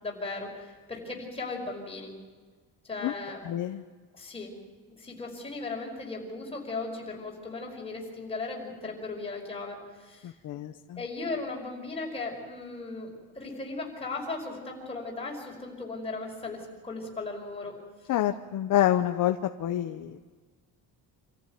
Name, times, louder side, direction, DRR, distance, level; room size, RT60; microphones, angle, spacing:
voice 1, 0.0-2.1 2.8-3.4 4.1-4.5 5.0-10.3 11.0-17.7, left 3 dB, 15° left, -1 dB, 5.3 m, -37 dB
voice 2, 3.4-3.8 10.2-11.0 18.1-20.2, left 12 dB, 55° left, 6 dB, 0.9 m, -27 dB
27.0 x 14.5 x 9.3 m, 1.5 s
cardioid pair, 175°, 39 cm